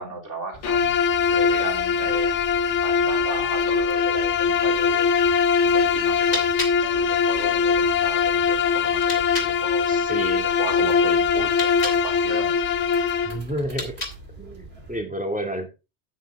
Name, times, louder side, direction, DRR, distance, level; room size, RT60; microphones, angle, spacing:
voice 1, 0.0-6.5 6.9-9.9 10.4-12.6 13.0-13.1, right 2 dB, 85° right, 2 dB, 3.6 m, -35 dB
sound 1, 0.5-15.0, right 3 dB, 60° right, 2.9 m, -44 dB
Bowed string instrument, 0.6-13.4, left 6 dB, 80° left, 1.0 m, -21 dB
sound 2, 6.2-9.6 11.4-12.1 13.6-14.4, left 2 dB, 65° left, 3.0 m, -34 dB
voice 2, 9.9-10.4 10.8-11.2 13.2-13.9 14.4-15.7, right 1 dB, 5° right, 4 dB, 2.2 m, -30 dB
9.3 x 9.1 x 3.6 m, 0.28 s
omnidirectional pair, 1.2 m